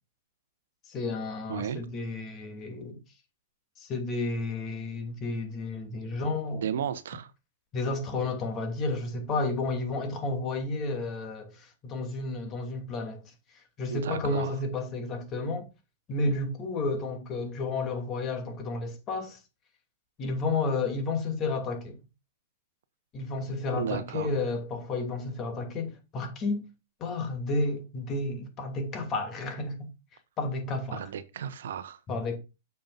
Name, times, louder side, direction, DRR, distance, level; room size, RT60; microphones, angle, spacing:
voice 1, 0.9-3.0 3.8-6.6 7.7-13.2 13.8-15.7 16.1-19.4 20.2-22.0 23.1-26.6 27.0-29.9 30.4-31.1 32.1-32.4, left 3 dB, 30° left, 2.6 m, -31 dB
voice 2, 1.5-1.9 6.5-7.3 13.9-14.5 23.7-24.3 30.9-32.0, right 8 dB, 70° right, 0.8 m, -34 dB
8.8 x 6.9 x 2.5 m
hypercardioid pair, 110°, 0 cm